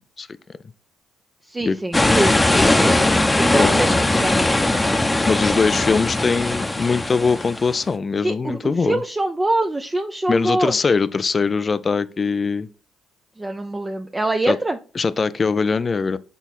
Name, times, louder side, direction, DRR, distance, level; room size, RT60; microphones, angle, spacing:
voice 1, 1.5-3.0 3.3-4.7 8.2-10.8 13.4-14.8, right 2 dB, 20° right, 0.6 m, -24 dB
sound 1, 1.9-7.8, left 2 dB, 15° left, 0.8 m, -19 dB
voice 2, 3.5-3.9 5.3-9.0 10.3-12.7 14.5-14.6 15.0-16.2, left 4 dB, 40° left, 0.4 m, -21 dB
6.1 x 4.0 x 4.1 m
hypercardioid pair, 50°, 0 cm